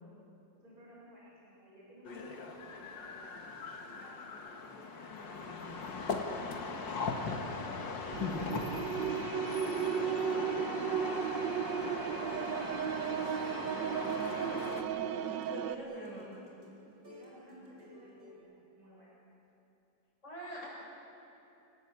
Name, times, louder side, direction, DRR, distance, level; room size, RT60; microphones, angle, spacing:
voice 1, 0.6-3.4 3.8-8.3 9.0-14.4 15.1-16.2 17.1-19.1, equal, 55° right, -6 dB, 7.5 m, -57 dB
sound 1, 2.0-14.8, left 4 dB, 90° left, 2.5 m, -39 dB
sound 2, 8.1-15.7, right 8 dB, 80° right, 1.6 m, -35 dB
sound 3, 12.3-12.6 12.9-18.3, left 1 dB, 30° right, 4.7 m, -56 dB
voice 2, 15.5-16.3 20.2-20.7, right 1 dB, 40° left, -5 dB, 8.0 m, -43 dB
30.0 x 19.0 x 8.5 m, 2.8 s
omnidirectional pair, 1.9 m